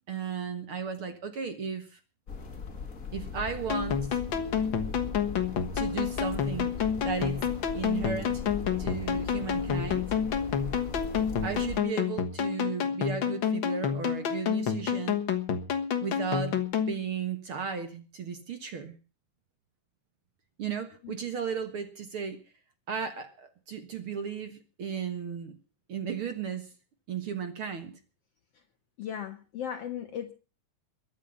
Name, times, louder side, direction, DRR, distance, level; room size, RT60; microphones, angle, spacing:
voice 1, 0.1-2.0 3.1-4.2 5.7-6.8 7.0-7.4 7.7-8.5 8.8-10.1 11.4-15.2 16.0-16.6 16.9-19.0 20.6-22.4 22.9-25.6 25.9-26.7 27.1-28.0, right 6 dB, 50° right, 8 dB, 1.9 m, -35 dB
sound 1, 2.3-11.8, left 5 dB, 35° left, 1.6 m, -39 dB
sound 2, 3.7-16.9, left 7 dB, 50° left, 1.6 m, -29 dB
voice 2, 29.0-30.3, left 9 dB, 70° left, 9 dB, 1.5 m, -36 dB
22.5 x 8.5 x 5.7 m, 0.35 s
omnidirectional pair, 3.8 m